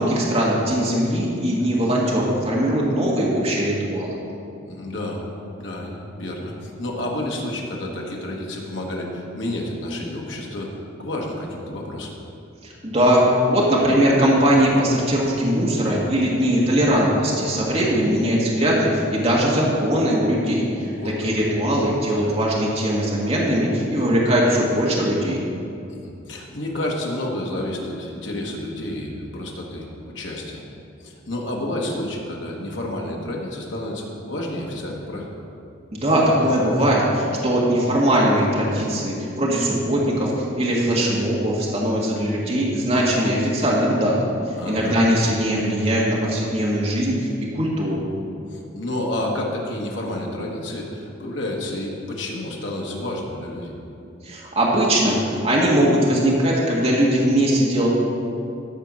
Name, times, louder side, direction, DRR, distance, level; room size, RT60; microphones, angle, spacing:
voice 1, 0.0-4.2 12.6-20.9 21.2-25.4 35.9-44.2 44.5-48.0 54.2-57.9, equal, 35° right, -5 dB, 1.7 m, -20 dB
voice 2, 4.6-5.2 5.6-10.7 11.0-12.1 20.8-21.3 25.9-30.6 31.0-35.3 44.6-45.0 48.5-53.8, left 1 dB, 70° left, -1 dB, 1.6 m, -30 dB
13.5 x 4.6 x 6.2 m, 2.6 s
head